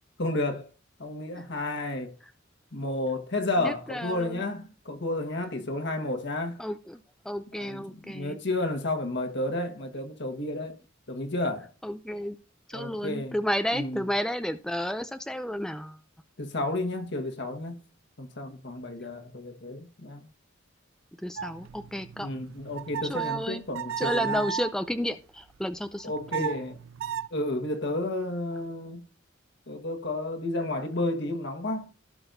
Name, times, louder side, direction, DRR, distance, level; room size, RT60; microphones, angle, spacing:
voice 1, 0.2-0.7 1.0-2.1 2.7-6.6 7.6-10.8 11.1-11.7 12.7-13.3 13.7-14.0 16.4-17.8 18.2-20.3 22.2-24.4 26.0-26.8 27.3-29.0 29.7-31.9, left 2 dB, 60° left, 1.5 m, -31 dB
voice 2, 3.6-4.4 6.6-8.4 11.8-12.4 12.7-16.0 21.2-22.3 23.0-23.6 24.0-26.1 26.4-26.5, equal, 5° left, 0.4 m, -32 dB
sound 1, 21.4-24.8 26.0-27.3, right 9 dB, 75° right, 0.4 m, -35 dB
16.0 x 6.0 x 2.6 m
head